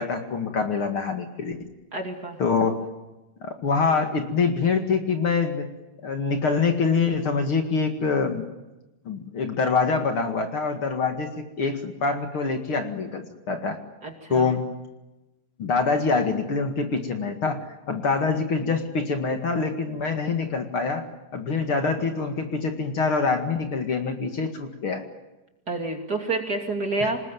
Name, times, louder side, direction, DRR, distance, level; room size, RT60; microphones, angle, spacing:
voice 1, 0.0-1.6 2.4-2.9 3.4-5.7 6.0-8.4 9.1-13.8 14.3-14.7 15.6-21.1 21.3-25.0 27.0-27.1, left 4 dB, 50° left, 5 dB, 2.7 m, -25 dB
voice 2, 1.9-2.4 14.0-14.5 25.7-27.2, right 2 dB, 35° right, 3 dB, 2.9 m, -28 dB
27.0 x 20.0 x 9.3 m, 1.0 s
omnidirectional pair, 3.3 m